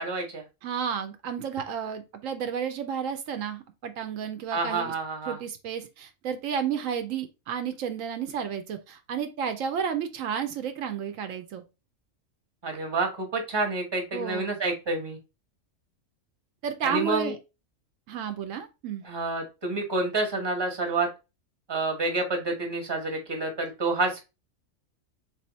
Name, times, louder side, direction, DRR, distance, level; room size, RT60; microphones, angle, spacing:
voice 1, 0.0-0.4 4.5-5.4 12.6-15.2 16.8-17.3 19.0-21.1 21.7-24.2, right 3 dB, 20° right, 0.9 m, -28 dB
voice 2, 0.6-4.9 5.3-11.6 14.1-14.6 16.6-17.4 18.1-19.0, right 7 dB, 80° right, 1.0 m, -32 dB
3.4 x 2.7 x 3.8 m
omnidirectional pair, 1.4 m